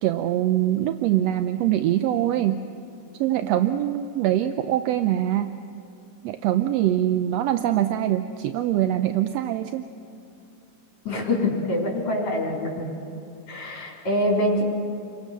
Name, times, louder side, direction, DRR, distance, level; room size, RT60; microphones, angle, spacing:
voice 1, 0.0-2.6 3.2-5.5 6.2-9.9, right 12 dB, 75° right, 9 dB, 1.7 m, -23 dB
voice 2, 11.0-12.9 13.5-14.6, left 1 dB, 65° left, -1 dB, 5.2 m, -25 dB
30.0 x 23.5 x 6.7 m, 2.8 s
omnidirectional pair, 3.4 m